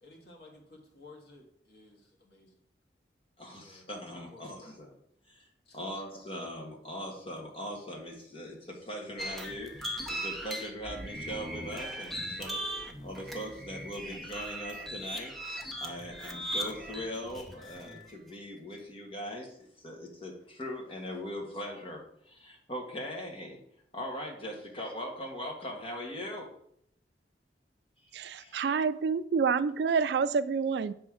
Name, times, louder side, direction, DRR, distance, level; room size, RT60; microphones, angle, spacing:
voice 1, 0.0-2.6 3.5-4.8 5.7-5.9 24.6-24.7, left 2 dB, 60° left, 1.8 m, -55 dB
voice 2, 3.4-4.9 5.3-5.5 5.7-15.3 15.8-23.6 23.9-26.6 28.3-28.6, equal, 30° left, 1.6 m, -40 dB
sound 1, 9.2-18.1, equal, ahead, 0.8 m, -39 dB
voice 3, 28.1-30.9, right 5 dB, 65° right, 0.3 m, -28 dB
7.5 x 3.7 x 6.2 m
head